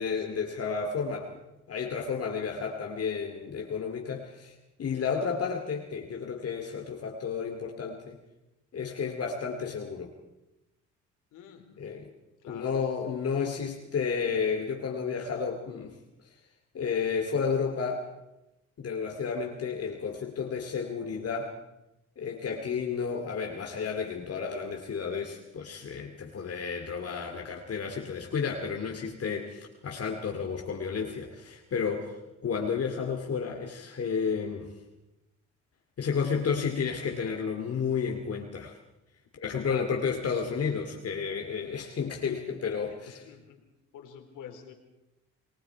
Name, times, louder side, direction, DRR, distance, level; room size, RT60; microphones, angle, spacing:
voice 1, 0.0-1.3 1.7-8.2 8.7-10.1 11.8-12.1 12.5-16.0 16.7-18.1 18.8-21.5 22.2-32.1 32.4-34.7 36.0-38.7 39.3-43.2, left 6 dB, 50° left, 2 dB, 2.6 m, -32 dB
voice 2, 11.3-11.8 12.4-12.8 39.7-39.9 41.8-42.1 43.1-43.6 43.9-44.7, left 8 dB, 85° left, 4 dB, 3.8 m, -48 dB
29.0 x 20.0 x 4.7 m, 0.95 s
cardioid pair, 90°, 30 cm